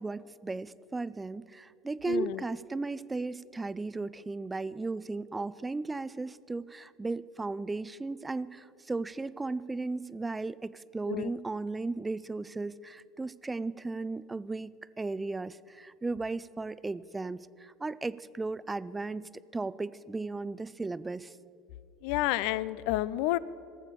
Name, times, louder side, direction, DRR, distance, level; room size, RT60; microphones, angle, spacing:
voice 1, 0.0-21.4, right 3 dB, 15° right, 18 dB, 0.4 m, -36 dB
voice 2, 2.1-2.4 11.1-11.3 22.0-23.4, left 17 dB, 70° left, 18 dB, 0.4 m, -30 dB
18.0 x 7.3 x 6.8 m, 2.6 s
hypercardioid pair, 80°, 0 cm